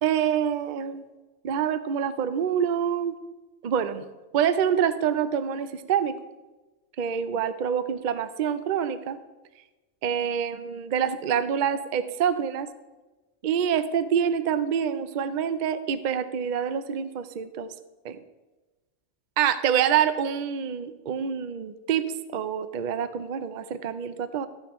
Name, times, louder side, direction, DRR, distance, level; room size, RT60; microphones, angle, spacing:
voice 1, 0.0-1.0 1.4-3.2 3.6-4.0 4.3-6.2 7.0-9.2 10.0-12.7 13.4-17.7 18.0-18.2 19.4-24.5, right 8 dB, 50° right, 11 dB, 0.6 m, -26 dB
13.0 x 9.3 x 3.0 m, 1.1 s
omnidirectional pair, 1.2 m